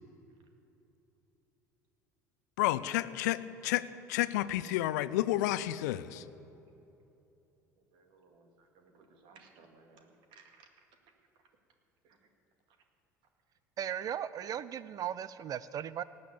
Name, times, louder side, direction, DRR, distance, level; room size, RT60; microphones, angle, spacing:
voice 1, 2.6-6.2, left 15 dB, 65° left, 16 dB, 0.5 m, -31 dB
voice 2, 7.9-10.7 12.0-12.2, right 4 dB, 55° right, 4 dB, 2.1 m, -60 dB
voice 3, 13.8-16.0, right 9 dB, 40° right, 17 dB, 0.4 m, -37 dB
18.5 x 7.7 x 7.0 m, 2.9 s
figure-of-eight pair, 65°, 10 cm